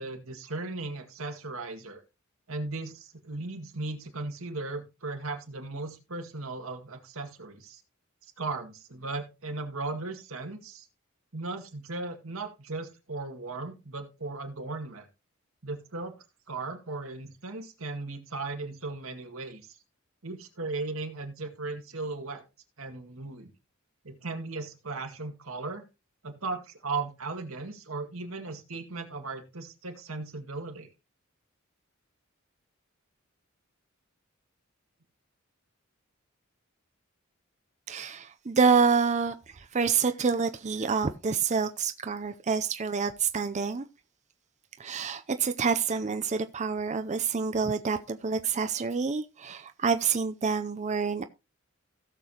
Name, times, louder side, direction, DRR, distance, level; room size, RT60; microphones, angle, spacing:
voice 1, 0.0-2.0 2.5-7.8 8.4-10.9 11.3-15.1 15.6-16.1 16.5-19.8 20.2-22.4 22.8-23.5 24.0-25.8 26.2-30.9, right 3 dB, 90° right, 2.1 m, -37 dB
voice 2, 37.9-43.9 44.8-51.2, right 5 dB, 35° right, 0.5 m, -27 dB
16.5 x 6.8 x 2.9 m
head